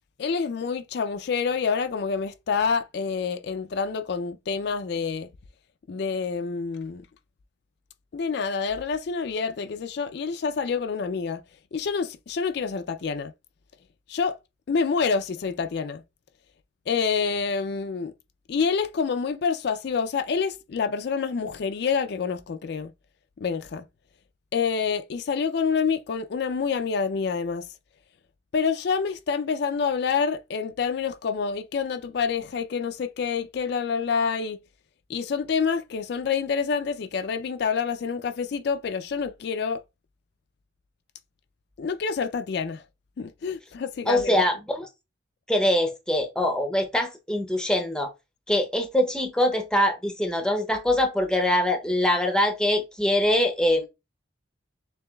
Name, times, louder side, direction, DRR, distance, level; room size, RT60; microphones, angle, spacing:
voice 1, 0.2-5.3 5.9-7.1 8.1-11.4 11.7-13.3 14.1-14.4 14.7-16.0 16.9-18.1 18.5-22.9 23.4-23.8 24.5-27.7 28.5-34.6 35.1-39.8 41.8-42.8 43.2-44.4, left 5 dB, 55° left, 0.3 m, -27 dB
voice 2, 44.1-44.9 45.5-48.1 48.5-53.9, left 1 dB, 5° left, 0.6 m, -23 dB
6.7 x 2.7 x 2.2 m
head